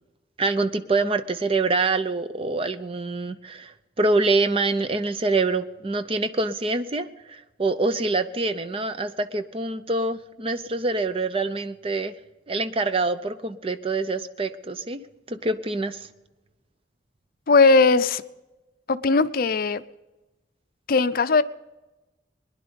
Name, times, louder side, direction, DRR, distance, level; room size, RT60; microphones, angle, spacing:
voice 1, 0.4-12.1 12.5-15.0 15.3-16.0, right 3 dB, 30° right, 11 dB, 0.6 m, -25 dB
voice 2, 17.5-18.2 18.9-19.8 20.9-21.4, left 4 dB, 50° left, 13 dB, 0.5 m, -18 dB
21.0 x 10.5 x 5.2 m, 1.1 s
head